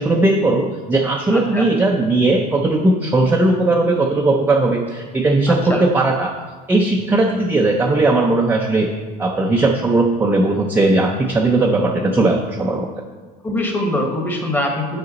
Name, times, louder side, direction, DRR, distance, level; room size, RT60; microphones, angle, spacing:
voice 1, 0.0-6.4 6.7-8.9 9.2-12.9, right 2 dB, 10° right, 1 dB, 0.4 m, -17 dB
voice 2, 1.3-1.6 5.5-5.8 13.4-15.0, left 1 dB, 10° left, 2 dB, 1.1 m, -23 dB
8.0 x 4.9 x 4.0 m, 1.4 s
cardioid pair, 140°, 19 cm